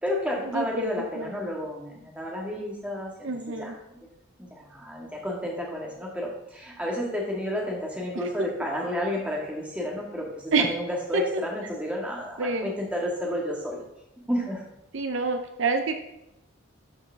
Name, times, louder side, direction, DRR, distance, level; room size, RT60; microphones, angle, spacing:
voice 1, 0.0-4.0 4.4-13.8 14.3-14.6, left 1 dB, 5° right, -2 dB, 1.7 m, -31 dB
voice 2, 1.0-1.4 3.2-3.7 10.5-10.7 11.1-11.2 12.4-12.7 14.9-15.9, right 4 dB, 65° right, 7 dB, 0.6 m, -27 dB
12.0 x 5.4 x 3.5 m, 0.85 s
head